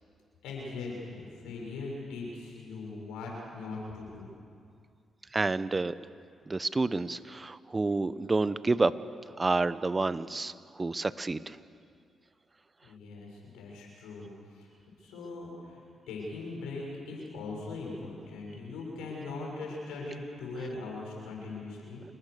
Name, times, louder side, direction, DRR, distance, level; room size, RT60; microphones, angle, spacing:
voice 1, 0.4-4.3 12.8-14.7 15.0-22.0, left 3 dB, 90° left, -2 dB, 7.2 m, -40 dB
voice 2, 5.3-5.9 6.5-8.9 9.4-10.5 10.8-11.6, right 3 dB, 30° right, 15 dB, 1.0 m, -29 dB
28.5 x 21.0 x 6.8 m, 2.3 s
supercardioid pair, 55°, 0 cm